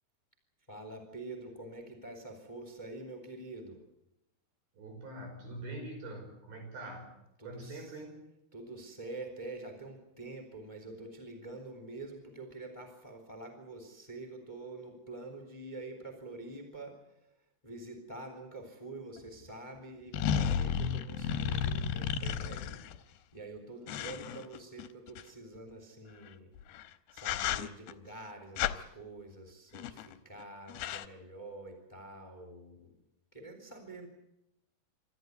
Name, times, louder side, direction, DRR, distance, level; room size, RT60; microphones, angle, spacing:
voice 1, 0.7-3.8 7.4-8.1 8.5-22.8 23.0-26.5 27.1-32.9 33.3-34.1, right 2 dB, 10° left, 4 dB, 3.0 m, -46 dB
voice 2, 4.7-7.1 7.4-8.2, right 2 dB, 65° right, 3 dB, 7.3 m, -44 dB
sound 1, 19.2-19.3 20.1-23.0 23.9-25.2 26.6-26.8 27.2-27.9 28.6-28.8 29.7-30.1 30.4-30.5 30.7-31.1, left 8 dB, 75° left, 2.7 m, -33 dB
27.0 x 13.0 x 9.6 m, 0.84 s
omnidirectional pair, 4.8 m